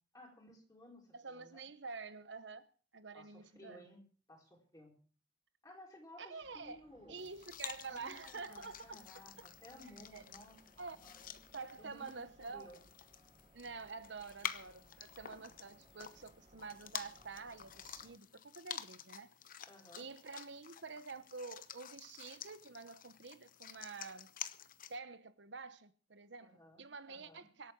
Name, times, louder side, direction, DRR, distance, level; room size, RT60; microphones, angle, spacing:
voice 1, 0.1-1.6 3.1-4.0 4.3-4.9 5.6-7.2 7.9-10.6 10.9-11.3 11.8-12.2 12.5-12.8 19.7-20.1 26.4-27.5, left 1 dB, 20° left, 4.5 m, -57 dB
voice 2, 1.1-2.7 2.9-3.8 6.2-6.8 7.1-9.0 10.0-10.2 10.8-11.0 11.5-12.7 13.5-19.3 20.0-24.3 24.9-27.7, right 4 dB, 65° right, 1.1 m, -48 dB
sound 1, 6.4-18.2, right 1 dB, 30° right, 1.1 m, -66 dB
sound 2, 7.2-25.0, left 9 dB, 45° left, 0.9 m, -50 dB
24.5 x 8.6 x 4.7 m
head